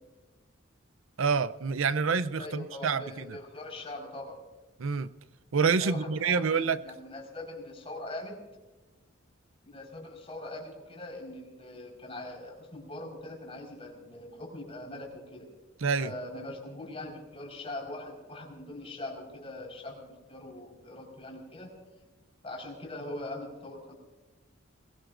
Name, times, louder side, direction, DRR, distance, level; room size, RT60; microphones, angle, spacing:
voice 1, 1.2-3.4 4.8-5.1 5.5-6.8 15.8-16.1, right 5 dB, 80° right, 0.6 m, -27 dB
voice 2, 2.4-4.4 5.8-8.4 9.6-15.5 16.0-21.7 22.4-23.9, left 1 dB, 30° left, 4.7 m, -42 dB
22.0 x 21.0 x 2.6 m
head